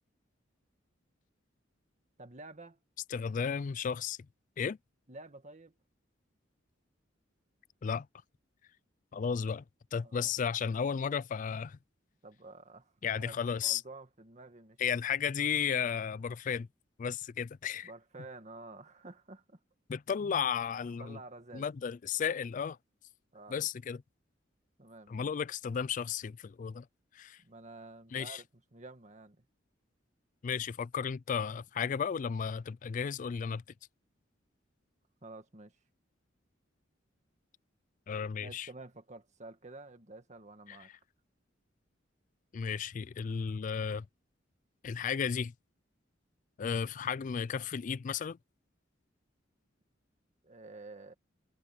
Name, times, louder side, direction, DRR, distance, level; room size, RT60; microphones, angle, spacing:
voice 1, 2.2-2.8 5.1-5.7 10.0-10.3 12.2-14.8 17.8-19.6 21.0-21.7 23.3-23.6 24.8-25.3 27.4-28.5 28.7-29.4 35.2-35.8 38.4-40.9 50.4-51.1, right 2 dB, 35° right, 1.8 m, -50 dB
voice 2, 3.1-4.2 4.6-4.8 7.8-8.1 9.1-9.6 9.9-11.8 13.0-13.8 14.8-16.7 17.0-17.9 19.9-21.2 21.5-22.8 23.5-24.0 25.1-26.9 27.1-27.4 28.1-28.4 30.4-33.6 38.1-38.7 40.7-40.8 42.5-44.1 44.8-45.5 46.6-48.4, left 7 dB, 40° left, 0.3 m, -34 dB
head